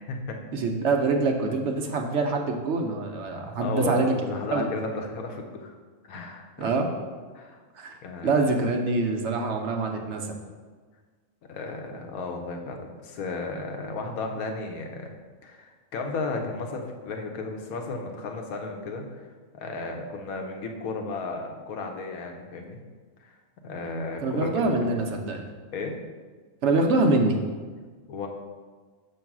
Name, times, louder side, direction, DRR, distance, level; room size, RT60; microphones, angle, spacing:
voice 1, 0.0-0.4 3.6-5.7 6.1-6.7 7.3-7.6 8.0-8.3 11.5-15.1 15.4-22.8 23.2-23.4 23.6-24.9 25.7-25.9 28.1-28.3, left 3 dB, 85° left, 3 dB, 1.2 m, -34 dB
voice 2, 0.5-4.1 4.5-4.7 6.6-6.9 7.7-8.0 8.2-10.3 24.2-25.5 26.6-27.4, right 3 dB, 60° right, 3 dB, 0.9 m, -25 dB
6.7 x 3.1 x 5.9 m, 1.5 s
omnidirectional pair, 1.5 m